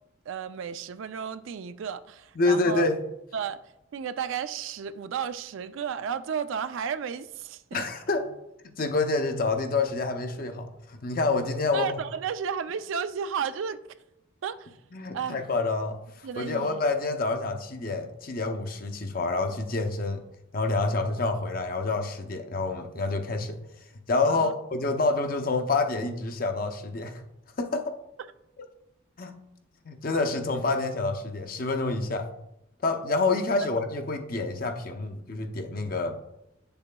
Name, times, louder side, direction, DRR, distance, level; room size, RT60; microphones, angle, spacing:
voice 1, 0.3-2.9 3.3-3.6 3.9-7.8 11.7-13.8 14.4-14.8 15.1-15.4 16.2-16.8 24.3-24.5, right 7 dB, 75° right, 0.4 m, -33 dB
voice 2, 2.4-3.0 7.7-8.3 8.8-11.9 14.9-20.2 20.5-23.6 24.1-27.2 27.6-28.0 29.2-29.4 29.8-32.3 32.8-36.2, left 3 dB, 45° left, 0.6 m, -27 dB
8.4 x 6.9 x 2.2 m
head